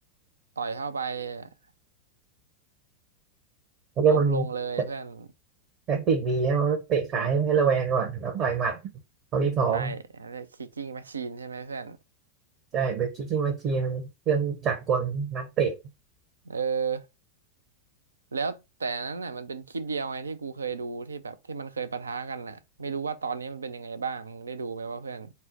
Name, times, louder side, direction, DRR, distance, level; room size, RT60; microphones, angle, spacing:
voice 1, 0.6-1.5 4.0-5.3 9.7-12.0 16.4-17.1 18.3-25.3, right 5 dB, 75° right, 0.4 m, -33 dB
voice 2, 4.0-4.4 5.9-8.8 9.3-10.0 12.7-15.7, right 5 dB, 35° right, 0.8 m, -25 dB
4.4 x 2.0 x 4.1 m
figure-of-eight pair, 90°, 0 cm